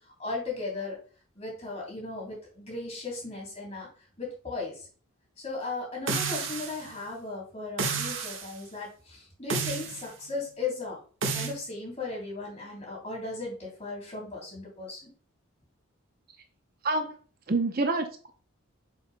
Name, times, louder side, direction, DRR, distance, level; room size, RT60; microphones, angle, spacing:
voice 1, 0.2-1.0 1.3-3.9 4.2-4.9 5.4-11.0 11.3-15.1, left 3 dB, 30° left, 3.2 m, -36 dB
sound 1, 6.1-6.9 7.8-8.5 9.5-10.1 11.2-11.5, right 4 dB, 60° right, 1.3 m, -30 dB
voice 2, 16.8-17.2 17.5-18.3, right 2 dB, 45° right, 0.7 m, -27 dB
7.2 x 7.0 x 2.2 m
head